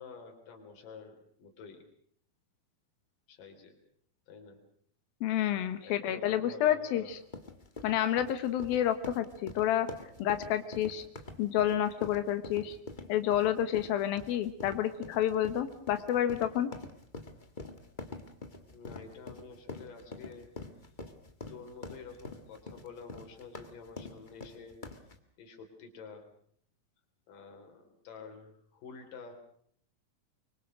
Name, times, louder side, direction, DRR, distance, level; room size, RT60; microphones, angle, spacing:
voice 1, 0.0-1.8 3.3-3.8 4.3-4.6 5.8-7.1 18.7-20.6 21.5-24.8 25.4-26.3 27.3-29.3, left 5 dB, 65° left, 4 dB, 5.0 m, -49 dB
voice 2, 5.2-7.2 7.8-9.9 10.2-11.0 11.4-12.8 13.1-16.7, left 11 dB, 90° left, 10 dB, 3.1 m, -29 dB
sound 1, 7.1-25.2, left 2 dB, 30° left, 0.8 m, -46 dB
25.0 x 23.5 x 6.3 m, 0.63 s
omnidirectional pair, 4.1 m